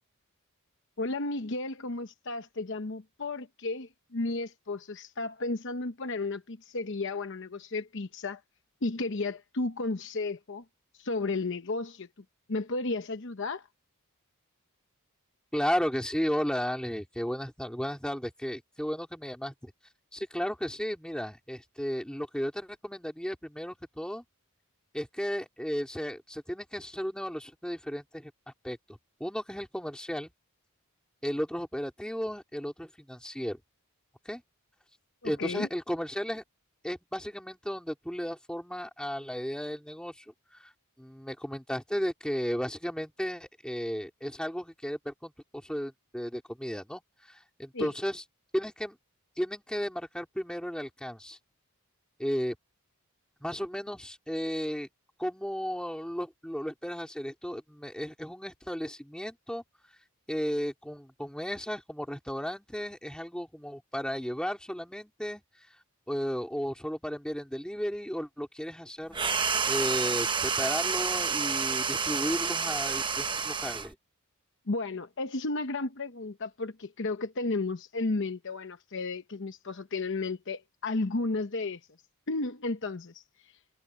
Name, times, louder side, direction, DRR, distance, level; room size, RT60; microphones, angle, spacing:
voice 1, 1.0-8.4 8.8-10.6 11.0-12.1 12.5-13.7 35.2-35.7 47.7-47.9 74.7-81.8 82.3-83.2, left 3 dB, 55° left, 0.9 m, -33 dB
voice 2, 15.5-19.7 20.1-24.2 24.9-28.3 28.6-30.3 31.2-33.6 34.3-34.4 35.2-36.4 36.8-40.2 40.6-40.7 41.0-47.0 47.3-48.2 48.5-49.0 49.4-51.4 52.2-52.6 53.4-54.9 55.2-59.6 60.3-65.4 66.1-69.2 69.7-74.0, equal, 5° left, 3.5 m, -34 dB
sound 1, 69.1-73.9, right 6 dB, 20° right, 0.9 m, -29 dB
head